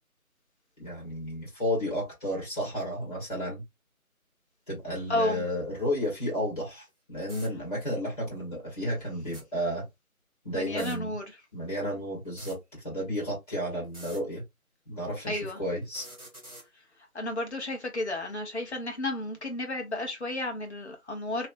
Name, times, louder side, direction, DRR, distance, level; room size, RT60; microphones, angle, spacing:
voice 1, 0.8-3.6 4.7-9.9 10.4-11.1 11.5-14.4 14.9-16.0, equal, 25° left, 1.6 m, -32 dB
voice 2, 5.1-5.4 10.5-11.2 15.3-15.6 17.1-21.5, left 2 dB, 50° left, 1.0 m, -32 dB
sound 1, 6.9-7.0 7.2-7.5 9.2-9.4 10.7-11.0 12.2-12.6 13.8-14.2 15.8-16.7, right 1 dB, 25° right, 1.4 m, -46 dB
3.1 x 3.0 x 2.5 m
figure-of-eight pair, 170°, 44 cm